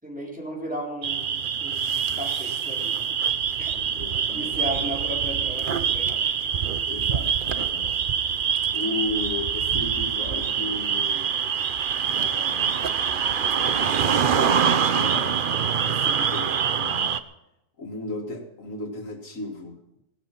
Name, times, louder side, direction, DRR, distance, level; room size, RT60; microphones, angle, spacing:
voice 1, 0.0-3.1 3.6-3.8 4.3-6.3 6.6-6.8 16.0-16.3, equal, 5° right, -3 dB, 3.9 m, -35 dB
sound 1, 1.0-17.2, right 7 dB, 50° right, 0.8 m, -25 dB
voice 2, 3.5-4.9 6.1-6.3 6.9-7.9 8.7-11.3 12.1-12.9 13.3-15.4 15.9-17.1 17.8-20.0, left 3 dB, 85° left, 3 dB, 2.2 m, -35 dB
17.5 x 12.5 x 5.8 m, 0.90 s
omnidirectional pair, 1.4 m